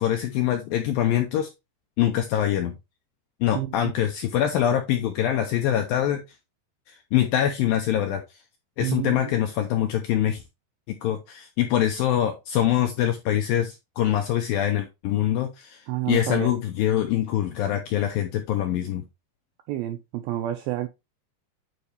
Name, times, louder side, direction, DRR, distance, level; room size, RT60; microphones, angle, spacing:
voice 1, 0.0-1.5 2.0-2.7 3.4-6.2 7.1-8.2 8.8-10.4 11.0-15.8 16.1-19.0, left 11 dB, 85° left, 2.1 m, -24 dB
voice 2, 8.8-9.3 15.9-16.5 19.7-20.9, right 14 dB, 85° right, 2.1 m, -29 dB
9.4 x 4.3 x 3.3 m
omnidirectional pair, 4.9 m